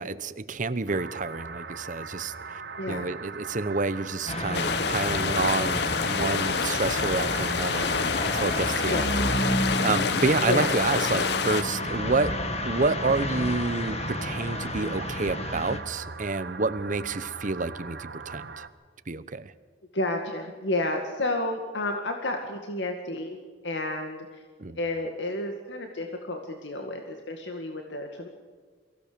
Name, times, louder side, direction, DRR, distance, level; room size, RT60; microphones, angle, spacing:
voice 1, 0.0-2.6 2.9-9.1 9.8-18.6 19.1-19.5 24.6-24.8, right 3 dB, 45° right, 14 dB, 0.9 m, -29 dB
sound 1, 0.9-18.7, right 5 dB, 65° right, 1.2 m, -40 dB
voice 2, 2.8-3.1 8.9-9.4 10.5-10.7 19.9-23.4 23.6-24.4 24.7-28.3, left 2 dB, 85° left, 4 dB, 2.0 m, -31 dB
sound 2, 4.3-15.8, left 1 dB, 35° left, 1.9 m, -31 dB
sound 3, 4.5-11.6, left 6 dB, 65° left, 0.9 m, -28 dB
23.5 x 16.5 x 6.9 m, 1.5 s
head